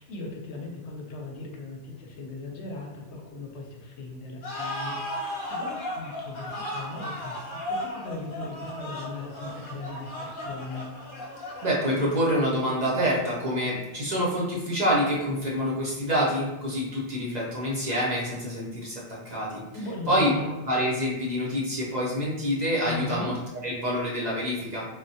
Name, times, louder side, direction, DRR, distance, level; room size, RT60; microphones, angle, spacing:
voice 1, 0.0-10.9 19.7-20.5 22.9-23.3, left 2 dB, 75° left, 1 dB, 0.9 m, -38 dB
sound 1, 4.4-12.3, left 1 dB, 50° left, 0.9 m, -35 dB
voice 2, 11.6-19.6 20.1-20.3 20.7-23.3 23.6-24.9, equal, 45° right, -5 dB, 0.7 m, -26 dB
3.5 x 2.1 x 2.6 m, 1.0 s
omnidirectional pair, 1.2 m